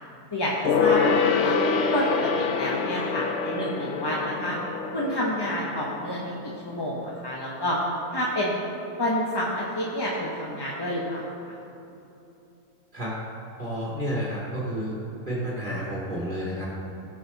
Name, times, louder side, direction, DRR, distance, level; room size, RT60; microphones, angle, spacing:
voice 1, 0.3-1.6 1.9-4.6 4.9-7.8 8.1-8.6 9.0-11.5, left 1 dB, 20° left, -4 dB, 0.8 m, -29 dB
Gong, 0.6-6.5 6.8-6.9, left 5 dB, 60° left, 0.8 m, -26 dB
voice 2, 13.6-15.0 15.3-16.7, equal, 30° right, -6 dB, 2.2 m, -30 dB
16.5 x 6.1 x 4.1 m, 2.9 s
omnidirectional pair, 1.6 m